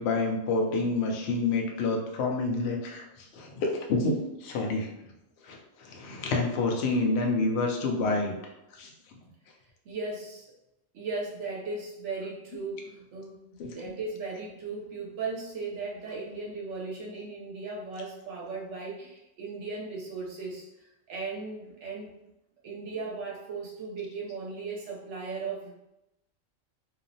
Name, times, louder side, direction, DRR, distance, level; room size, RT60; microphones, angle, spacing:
voice 1, 0.0-4.9 5.4-8.3 8.7-8.9 13.6-13.7, left 3 dB, 65° left, 1 dB, 0.7 m, -28 dB
voice 2, 9.8-10.5 10.9-22.1 22.6-25.7, right 3 dB, 65° right, -3 dB, 1.0 m, -37 dB
2.8 x 2.0 x 2.6 m, 0.90 s
omnidirectional pair, 1.4 m